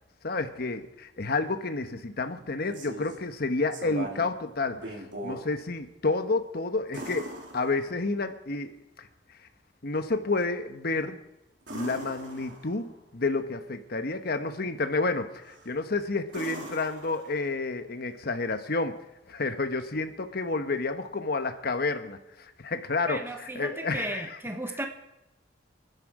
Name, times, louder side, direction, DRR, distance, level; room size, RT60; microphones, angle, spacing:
voice 1, 0.2-9.5 9.8-11.2 11.7-19.0 19.3-24.4, left 3 dB, 60° left, 8 dB, 1.1 m, -30 dB
sound 1, 2.4-3.2 3.7-4.3 4.7-5.5 6.9-8.2 11.6-12.9 15.4-15.8 16.3-17.7 19.8-19.9, right 1 dB, 75° right, 3.7 m, -41 dB
voice 2, 23.1-24.9, right 1 dB, 15° right, 5 dB, 1.1 m, -35 dB
28.5 x 10.5 x 4.9 m, 0.96 s
head